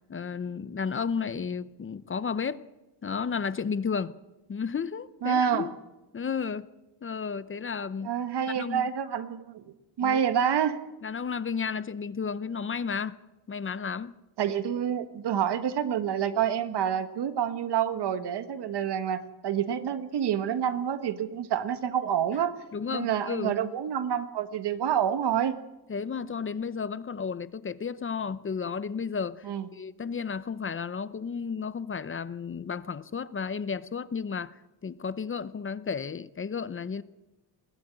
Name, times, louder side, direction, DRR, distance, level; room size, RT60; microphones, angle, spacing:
voice 1, 0.1-2.6 3.0-4.1 4.5-5.7 6.1-6.7 7.0-8.2 8.5-8.9 10.0-10.2 11.0-13.2 13.5-14.1 22.7-23.6 25.9-29.4 29.7-34.6 34.8-37.0, left 6 dB, 30° left, 0.7 m, -33 dB
voice 2, 5.2-5.7 8.0-9.6 10.0-10.8 14.4-22.5 22.9-25.5 29.4-29.7, right 9 dB, 85° right, 1.6 m, -28 dB
21.5 x 15.5 x 9.0 m
wide cardioid pair, 140°, 39 cm